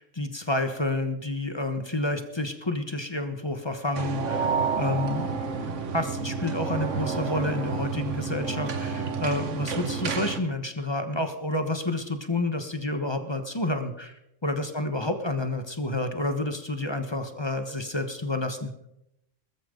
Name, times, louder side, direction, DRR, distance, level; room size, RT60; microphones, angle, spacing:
voice 1, 0.0-4.5 4.8-18.7, left 2 dB, 20° left, 7 dB, 1.3 m, -29 dB
sound 1, 3.9-10.4, right 5 dB, 70° right, 1.4 m, -30 dB
20.0 x 14.0 x 3.9 m, 0.83 s
omnidirectional pair, 1.3 m